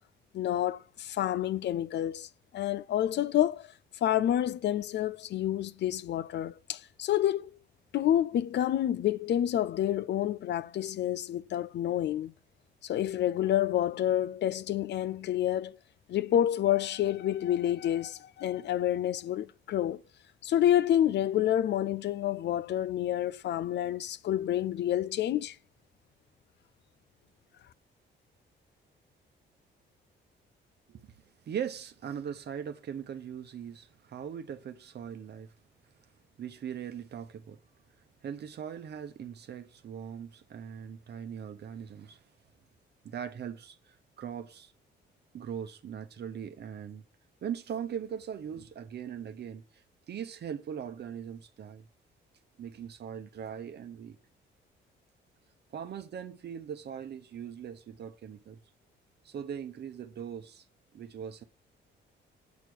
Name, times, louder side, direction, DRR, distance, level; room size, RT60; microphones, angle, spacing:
voice 1, 0.3-3.7 4.0-7.5 7.9-12.3 12.8-15.8 16.1-20.0 20.4-25.6, left 11 dB, 60° left, 0.4 m, -28 dB
voice 2, 31.5-35.5 36.4-37.6 38.2-42.2 43.0-44.7 45.3-47.0 47.4-49.8 50.1-51.8 52.6-54.2 55.7-58.6 59.2-60.6 60.9-61.4, right 8 dB, 55° right, 0.9 m, -40 dB
8.3 x 4.6 x 6.1 m
cardioid pair, 90°, 20 cm